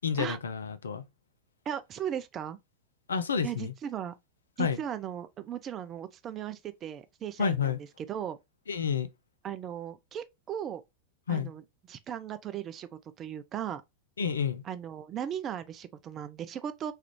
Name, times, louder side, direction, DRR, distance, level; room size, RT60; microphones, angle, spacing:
voice 1, 0.0-1.1 3.1-3.7 4.6-4.8 7.4-7.8 8.7-9.1 11.3-11.5 14.2-14.6, left 6 dB, 70° left, 0.4 m, -29 dB
voice 2, 1.7-2.6 3.4-4.1 4.6-8.4 9.4-10.8 11.3-11.6 11.9-12.9 13.2-13.8 14.6-16.9, right 9 dB, 30° right, 0.4 m, -37 dB
3.2 x 2.4 x 2.8 m
figure-of-eight pair, 90°, 0 cm